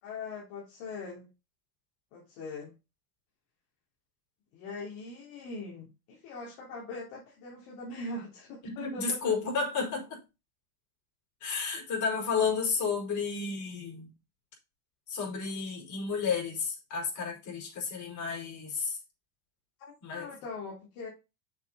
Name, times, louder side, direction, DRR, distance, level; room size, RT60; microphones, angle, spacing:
voice 1, 0.0-1.3 2.1-2.7 4.5-9.3 19.8-21.1, left 3 dB, 65° left, 3.3 m, -41 dB
voice 2, 8.6-10.2 11.4-14.1 15.1-19.0 20.0-20.3, left 5 dB, 45° left, 5.0 m, -32 dB
6.9 x 6.8 x 4.3 m
supercardioid pair, 105°, 42 cm